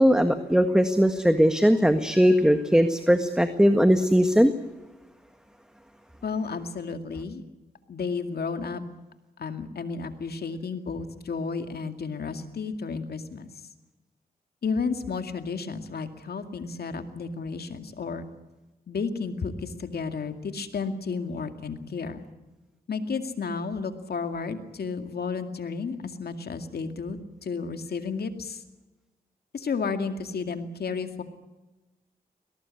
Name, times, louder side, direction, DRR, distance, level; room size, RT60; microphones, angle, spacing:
voice 1, 0.0-4.5, equal, 5° right, 8 dB, 1.7 m, -20 dB
voice 2, 6.2-7.4 7.9-8.8 9.4-13.5 14.6-18.3 18.9-22.3 22.9-28.6 29.5-31.2, left 5 dB, 80° left, 7 dB, 2.2 m, -32 dB
22.0 x 18.5 x 9.7 m, 1.1 s
cardioid pair, 60°, 16 cm